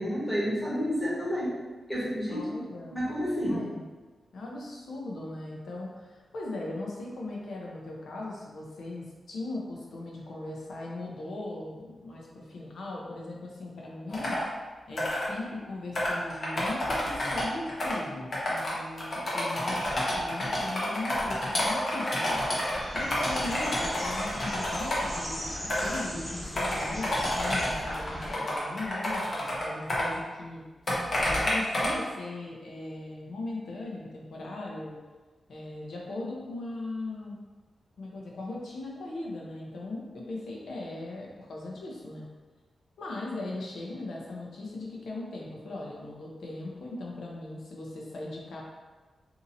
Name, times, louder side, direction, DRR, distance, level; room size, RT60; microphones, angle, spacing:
voice 1, 0.0-1.5 1.9-2.6 2.9-3.6, equal, 5° left, -8 dB, 1.1 m, -30 dB
voice 2, 2.3-3.0 3.5-3.8 4.3-14.4 14.9-22.4 22.9-30.6 31.2-35.0 35.5-37.4 38.0-42.2 43.0-48.6, left 2 dB, 85° left, -2 dB, 0.7 m, -39 dB
sound 1, 14.1-14.4 15.0-15.3 15.9-17.9 18.3-18.7 19.0-25.2 25.6-26.0 26.3-30.1 30.9-31.9, left 1 dB, 45° left, 0.9 m, -29 dB
sound 2, 22.7-28.3, equal, 25° left, 1.2 m, -39 dB
2.8 x 2.7 x 3.9 m, 1.3 s
wide cardioid pair, 140°, 0 cm